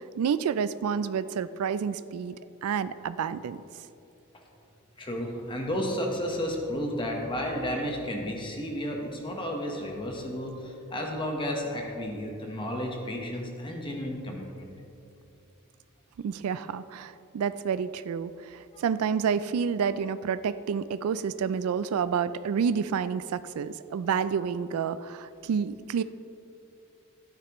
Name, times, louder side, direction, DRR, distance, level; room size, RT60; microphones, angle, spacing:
voice 1, 0.2-3.6 16.2-26.0, right 7 dB, 80° right, 14 dB, 0.3 m, -29 dB
voice 2, 5.0-14.7 18.7-18.8, equal, 25° left, 1 dB, 1.1 m, -32 dB
12.5 x 9.7 x 3.0 m, 2.7 s
head